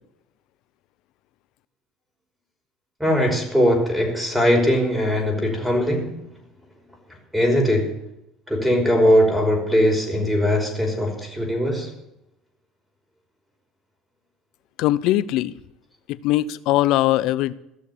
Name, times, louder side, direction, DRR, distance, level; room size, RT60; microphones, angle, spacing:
voice 1, 3.0-6.1 7.3-8.0 8.5-11.9, equal, 5° right, 5.5 m, -20 dB
voice 2, 14.8-15.5 16.1-17.5, left 15 dB, 65° left, 0.6 m, -20 dB
15.5 x 6.6 x 9.9 m
supercardioid pair, 85°, 0 cm